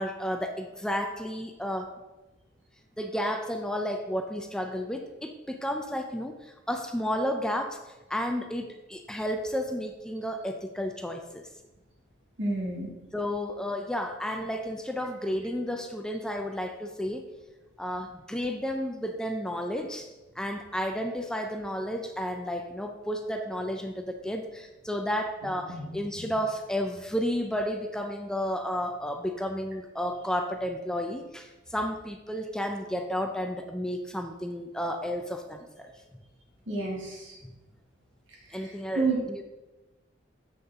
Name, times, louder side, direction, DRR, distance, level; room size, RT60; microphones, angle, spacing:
voice 1, 0.0-2.0 3.0-7.8 8.1-11.5 13.1-17.3 17.8-20.1 20.4-35.9 37.4-37.5 38.5-39.4, equal, 5° left, 5 dB, 0.4 m, -32 dB
voice 2, 12.4-12.9 25.7-25.9 26.1-26.3 36.7-37.4 39.0-39.2, right 3 dB, 75° right, -2 dB, 2.2 m, -29 dB
7.2 x 6.5 x 3.6 m, 1.1 s
head